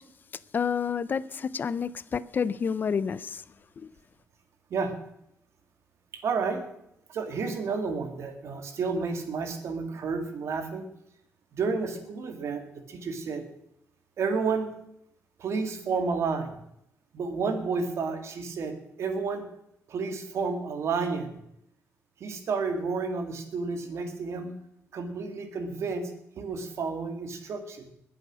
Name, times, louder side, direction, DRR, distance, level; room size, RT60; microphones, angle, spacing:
voice 1, 0.5-3.4 3.8-3.9, left 6 dB, 40° left, 0.5 m, -29 dB
voice 2, 6.2-6.6 7.1-10.9 11.5-13.4 14.2-14.7 15.4-16.6 17.1-19.5 19.9-21.4 22.2-24.5 24.9-26.1 26.4-27.9, right 4 dB, 60° right, 2.5 m, -31 dB
21.5 x 7.8 x 6.2 m
wide cardioid pair, 150°, 5 cm